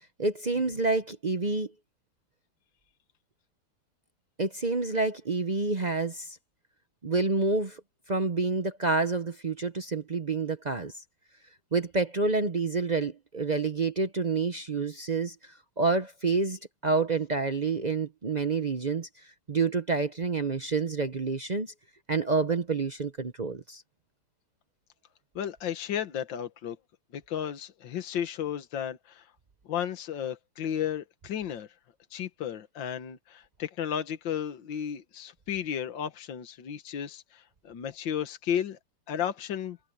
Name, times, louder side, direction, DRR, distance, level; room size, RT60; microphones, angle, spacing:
voice 1, 0.2-1.7 4.4-6.4 7.0-7.8 8.1-10.9 11.7-21.7 22.1-23.8, right 4 dB, 55° right, 0.4 m, -28 dB
voice 2, 25.4-26.8 27.1-29.2 29.7-31.7 32.1-38.8 39.1-39.8, left 9 dB, 75° left, 2.0 m, -33 dB
omnidirectional pair, 2.1 m